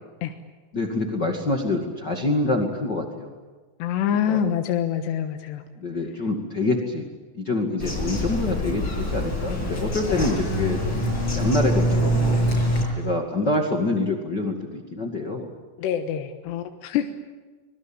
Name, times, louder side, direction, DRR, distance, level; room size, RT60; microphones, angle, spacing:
voice 1, 0.7-3.3 4.3-4.4 5.8-7.0 7.3-12.4 12.9-15.5, left 2 dB, 45° left, 2 dB, 1.4 m, -26 dB
voice 2, 3.8-5.6 10.2-10.7 15.8-17.1, left 9 dB, 70° left, 5 dB, 3.2 m, -26 dB
Bird vocalization bird call bird song, 7.8-12.8, equal, 25° left, 7.7 m, -24 dB
25.0 x 22.0 x 9.0 m, 1.4 s
omnidirectional pair, 5.6 m